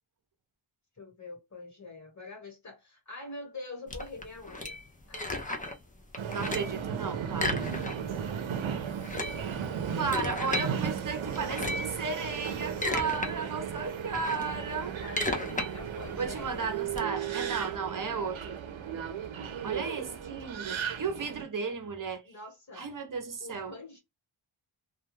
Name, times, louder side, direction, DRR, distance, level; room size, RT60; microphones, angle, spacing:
voice 1, 1.0-4.8 5.1-5.6 15.0-16.8 22.2-22.8 23.4-24.0, left 3 dB, 35° left, 1.4 m, -45 dB
sound 1, 3.9-5.8 6.1-6.8 7.3-8.2 8.5-8.6 8.9-10.7 11.3-12.0 12.5-13.3 13.7-17.0, left 2 dB, 15° left, 0.5 m, -34 dB
Subway metro underground, 6.2-21.4, right 7 dB, 80° right, 0.7 m, -35 dB
voice 2, 6.3-7.6 9.9-15.0 15.6-15.7 16.2-18.6 19.6-22.3 22.8-23.7, right 5 dB, 45° right, 0.7 m, -34 dB
2.4 x 2.3 x 3.1 m
wide cardioid pair, 100°, 47 cm